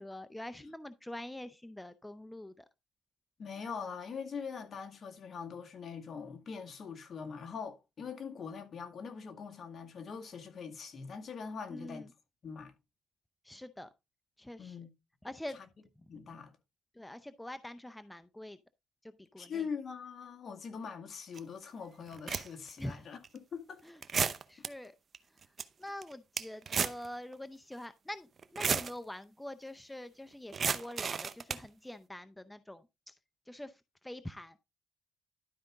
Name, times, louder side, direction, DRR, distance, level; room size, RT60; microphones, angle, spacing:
voice 1, 0.0-2.7 11.7-12.1 13.4-13.9 14.4-14.8 15.2-15.6 17.0-18.6 19.2-19.6 22.8-23.0 23.8-24.9 25.8-33.1 33.5-34.6, left 1 dB, 10° left, 0.5 m, -45 dB
voice 2, 3.4-12.1 12.4-12.7 14.6-14.9 15.5-15.7 16.1-16.5 19.4-23.2 23.5-23.8, left 6 dB, 50° left, 2.0 m, -42 dB
sound 1, 21.4-21.5 22.1-22.7 23.2-23.4 24.0-24.7 25.1-25.2 25.4-25.6 26.0-27.1 27.3-27.4 28.4-28.9 30.5-31.7, right 6 dB, 45° right, 0.7 m, -32 dB
12.0 x 5.0 x 3.6 m
cardioid pair, 90°, 0 cm